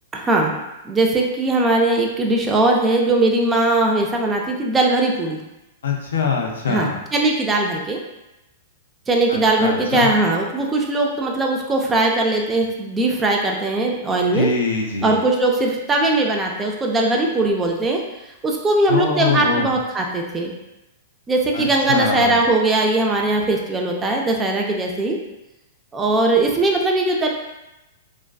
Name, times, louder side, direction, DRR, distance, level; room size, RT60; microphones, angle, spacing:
voice 1, 0.1-0.5 0.8-5.4 6.7-8.0 9.1-14.5 15.0-18.0 18.4-20.5 21.3-25.2 25.9-27.3, right 2 dB, 15° right, 0 dB, 0.4 m, -20 dB
voice 2, 5.8-6.9 9.3-10.1 14.3-15.2 18.9-19.7 21.5-22.3, left 4 dB, 85° left, 1 dB, 0.5 m, -23 dB
2.4 x 2.2 x 2.3 m, 0.94 s
hypercardioid pair, 120°, 0 cm